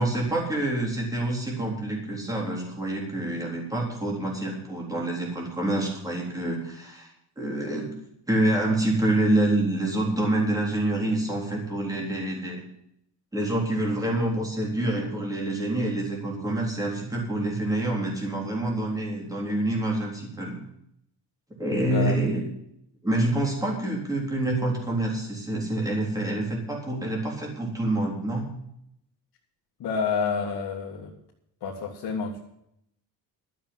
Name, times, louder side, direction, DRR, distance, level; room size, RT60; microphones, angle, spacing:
voice 1, 0.0-7.1 7.4-7.9 8.3-12.6 13.3-20.6 21.6-22.5 23.0-28.5, right 1 dB, 10° right, -1 dB, 3.7 m, -27 dB
voice 2, 21.8-22.2 29.8-31.1 31.6-32.4, left 5 dB, 60° left, -3 dB, 2.2 m, -29 dB
12.5 x 7.4 x 9.5 m, 0.76 s
cardioid pair, 145°, 41 cm